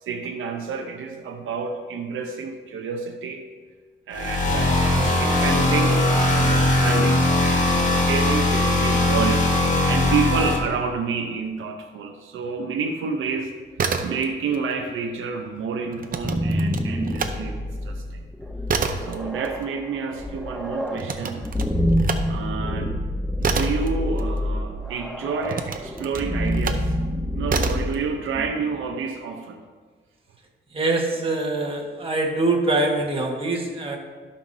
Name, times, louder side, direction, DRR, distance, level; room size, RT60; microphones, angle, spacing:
voice 1, 0.0-3.4 4.1-9.5 9.9-13.5 14.0-18.2 19.0-21.5 22.3-23.0 23.4-29.6, right 5 dB, 85° right, 4 dB, 0.7 m, -29 dB
sound 1, 4.1-10.6, left 1 dB, 40° left, 1.6 m, -20 dB
sound 2, 13.6-14.6 14.9-17.4 17.8-24.8 25.4-26.9 27.5-28.0, right 5 dB, 45° right, 0.7 m, -29 dB
sound 3, 16.0-28.8, equal, ahead, 0.7 m, -27 dB
voice 2, 30.7-34.0, right 2 dB, 30° right, 0 dB, 1.5 m, -24 dB
15.0 x 5.7 x 2.7 m, 1.4 s
cardioid pair, 115°, 20 cm